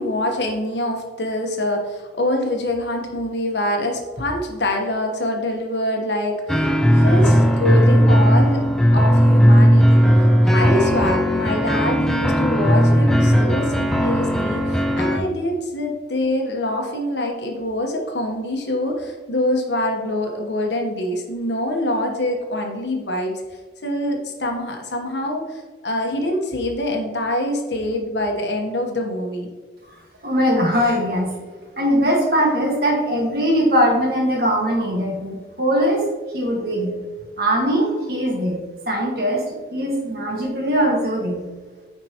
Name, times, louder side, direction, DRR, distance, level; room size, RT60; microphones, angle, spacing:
voice 1, 0.0-8.6 8.9-23.4 23.8-29.5, left 1 dB, 70° left, 1 dB, 1.1 m, -25 dB
sound 1, 6.5-15.2, equal, ahead, 0.4 m, -16 dB
voice 2, 30.2-31.3 31.8-36.1 36.3-37.0 37.4-38.6 38.9-41.4, equal, 55° right, 0 dB, 1.6 m, -20 dB
9.6 x 4.5 x 2.9 m, 1.3 s
head